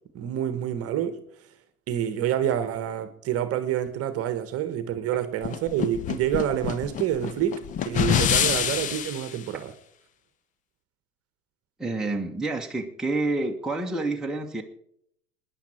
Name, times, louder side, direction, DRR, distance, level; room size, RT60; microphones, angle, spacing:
voice 1, 0.1-1.2 1.9-9.7, right 10 dB, 30° right, 1.4 m, -28 dB
sound 1, 5.4-9.3, left 9 dB, 20° left, 0.5 m, -26 dB
voice 2, 11.8-14.6, right 2 dB, ahead, 1.4 m, -28 dB
27.5 x 10.0 x 4.5 m
figure-of-eight pair, 90°, 45 cm